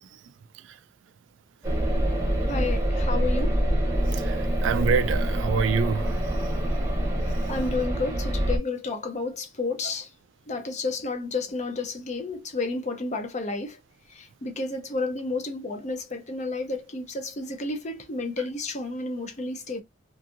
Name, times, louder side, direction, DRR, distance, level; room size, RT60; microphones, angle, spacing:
sound 1, 1.6-8.6, right 1 dB, 15° right, 0.8 m, -25 dB
voice 1, 2.5-3.6 7.5-10.1 10.5-13.8 14.1-19.8, left 3 dB, 40° left, 0.6 m, -31 dB
voice 2, 4.1-6.2, right 5 dB, 75° right, 0.3 m, -27 dB
2.9 x 2.6 x 2.4 m
head